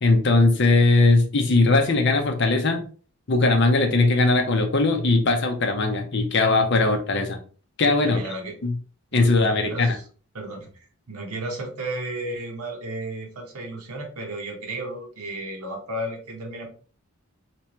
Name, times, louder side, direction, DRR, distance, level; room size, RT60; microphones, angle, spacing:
voice 1, 0.0-2.8 3.3-7.4 7.8-8.2 8.6-8.7 9.1-10.0, left 3 dB, 50° left, 4 dB, 0.7 m, -19 dB
voice 2, 8.0-8.6 9.1-10.0 10.3-16.7, right 1 dB, 80° right, 2 dB, 1.0 m, -34 dB
3.3 x 3.0 x 2.9 m, 0.40 s
head